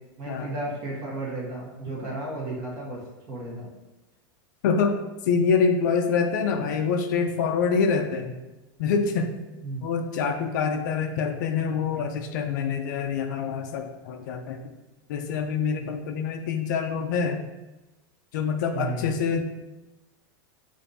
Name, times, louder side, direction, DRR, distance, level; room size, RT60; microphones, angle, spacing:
voice 1, 0.2-3.7 9.6-9.9 18.7-19.2, right 2 dB, 35° right, -4 dB, 1.2 m, -33 dB
voice 2, 4.6-8.4 8.8-9.3 9.8-14.7 15.1-17.5 18.3-19.4, left 5 dB, 55° left, 5 dB, 0.4 m, -26 dB
6.6 x 2.6 x 2.7 m, 1.1 s
supercardioid pair, 170°, 12 cm